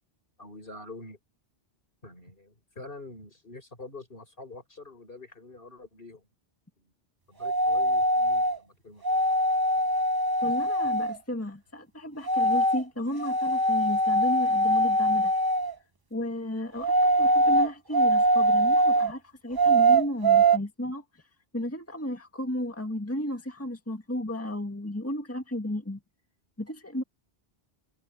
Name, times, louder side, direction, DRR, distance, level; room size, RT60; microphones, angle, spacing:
voice 1, 0.4-1.2 2.0-6.3 6.8-6.9 7.3-9.2, left 2 dB, 60° left, 5.6 m, -46 dB
Train Whistle or Different Whistle sounds, 7.4-8.6 9.0-11.1 12.3-12.8 13.2-15.7 16.8-19.1 19.6-20.6, right 1 dB, 25° right, 0.7 m, -22 dB
voice 2, 10.4-15.3 16.1-21.2 21.5-26.0 26.6-27.0, left 1 dB, 15° left, 1.9 m, -33 dB
omnidirectional pair, 1.1 m